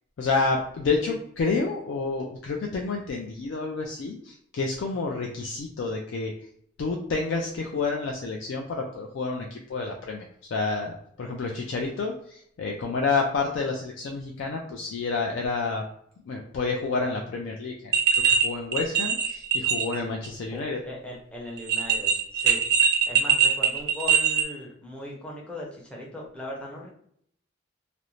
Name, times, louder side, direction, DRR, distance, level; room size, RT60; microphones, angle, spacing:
voice 1, 0.2-6.3 6.8-10.3 10.5-15.8 16.3-17.9 18.3-20.8, left 4 dB, 65° left, 0 dB, 0.3 m, -29 dB
sound 1, 17.9-18.4 18.7-19.9 20.2-20.3 21.6-24.4, right 7 dB, 50° right, 0.4 m, -22 dB
voice 2, 20.5-22.6 23.1-26.9, left 1 dB, 5° left, -3 dB, 0.5 m, -39 dB
2.5 x 2.0 x 2.9 m, 0.68 s
head